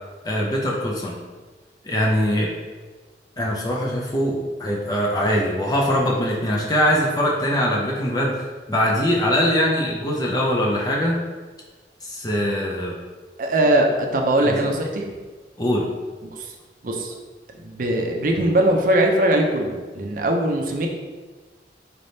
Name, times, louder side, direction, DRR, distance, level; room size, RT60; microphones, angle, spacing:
voice 1, 0.2-1.2 1.8-2.5 3.4-11.2 12.0-12.9 14.4-14.7 15.6-15.9, equal, 20° left, -2 dB, 0.5 m, -22 dB
voice 2, 13.4-15.1 16.3-16.5 16.8-17.1 17.6-20.9, right 1 dB, 50° right, 1 dB, 0.5 m, -21 dB
4.2 x 3.3 x 2.7 m, 1.3 s
head